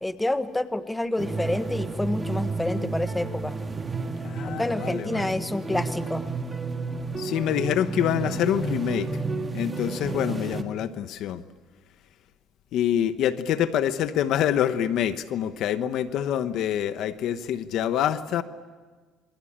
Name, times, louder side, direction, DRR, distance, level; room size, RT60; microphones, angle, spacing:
voice 1, 0.0-3.6 4.4-6.3, left 1 dB, 10° left, 11 dB, 1.2 m, -28 dB
sound 1, 1.2-10.6, right 3 dB, 20° right, 1.8 m, -31 dB
voice 2, 4.2-5.4 7.2-9.1 9.5-11.4 12.7-18.4, left 10 dB, 65° left, 11 dB, 1.0 m, -26 dB
27.5 x 22.5 x 8.8 m, 1.5 s
cardioid pair, 110°, 0 cm